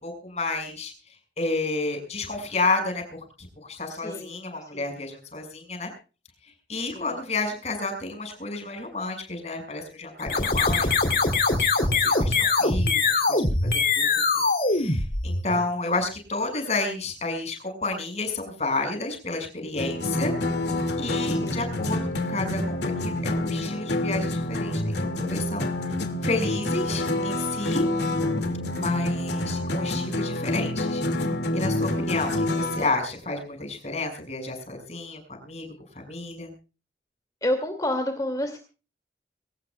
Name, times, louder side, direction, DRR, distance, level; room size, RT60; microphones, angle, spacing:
voice 1, 0.0-0.9 1.4-3.2 3.7-5.9 6.7-10.9 11.1-11.7 12.0-13.0 13.3-14.1 14.7-20.3 21.0-25.7 26.2-27.9 28.8-31.0 31.5-35.7 35.9-36.5, left 3 dB, 40° left, 5 dB, 6.2 m, -31 dB
voice 2, 3.9-5.0 6.8-7.1 15.5-15.7 21.3-21.7 27.8-28.1 37.4-38.6, left 1 dB, 20° left, 5 dB, 2.5 m, -31 dB
sound 1, 10.2-15.7, left 3 dB, 55° left, 3.1 m, -23 dB
sound 2, 19.8-32.9, left 1 dB, 75° left, 2.4 m, -27 dB
23.0 x 19.0 x 2.4 m, 0.34 s
head